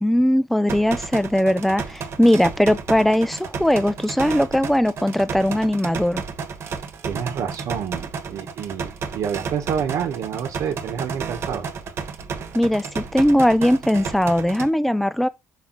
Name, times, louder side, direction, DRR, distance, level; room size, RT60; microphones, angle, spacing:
voice 1, 0.0-6.2 12.5-15.3, equal, ahead, 0.5 m, -19 dB
sound 1, 0.7-14.7, right 5 dB, 50° right, 1.3 m, -32 dB
voice 2, 7.0-11.7, right 8 dB, 75° right, 1.2 m, -28 dB
6.3 x 5.0 x 4.0 m
cardioid pair, 160°, 6 cm